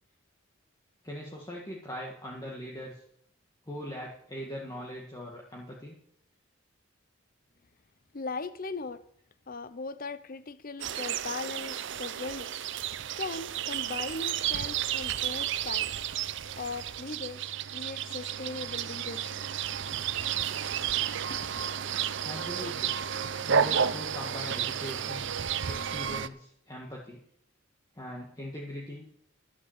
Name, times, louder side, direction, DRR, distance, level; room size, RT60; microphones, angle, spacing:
voice 1, 1.0-3.0 3.7-6.0 22.2-22.9 23.5-25.3 25.6-27.2 28.0-29.1, equal, 20° left, 1.8 m, -41 dB
voice 2, 8.1-9.0 9.5-12.5 13.2-16.1 16.5-19.4 21.3-21.5, left 3 dB, 45° left, 0.7 m, -39 dB
sound 1, 10.8-26.3, right 8 dB, 60° right, 0.6 m, -32 dB
12.0 x 8.1 x 7.3 m
head